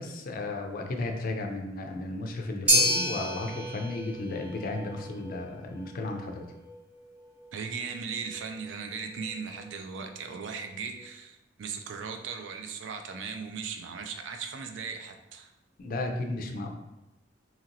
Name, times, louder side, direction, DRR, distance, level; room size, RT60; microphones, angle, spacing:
voice 1, 0.0-6.5 15.8-16.7, left 2 dB, 50° left, 3 dB, 0.4 m, -34 dB
sound 1, 2.7-11.0, equal, 5° right, 0.5 m, -32 dB
voice 2, 7.5-15.5, right 5 dB, 80° right, 5 dB, 0.4 m, -38 dB
2.8 x 2.8 x 2.5 m, 0.98 s
head